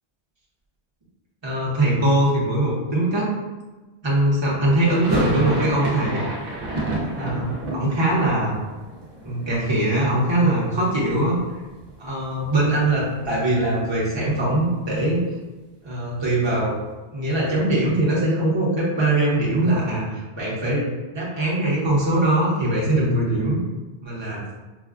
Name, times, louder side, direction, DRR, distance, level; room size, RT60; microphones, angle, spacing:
voice 1, 1.4-3.3 4.0-6.2 7.2-8.6 9.2-11.4 12.0-15.2 15.8-16.8 17.1-20.9 21.1-23.6 24.0-24.4, right 1 dB, 25° right, -6 dB, 0.9 m, -21 dB
sound 1, 4.8-10.8 11.0-11.9 12.1-12.2 12.5-14.7, right 2 dB, 60° right, 1.0 m, -30 dB
5.1 x 2.2 x 2.4 m, 1.2 s
omnidirectional pair, 1.1 m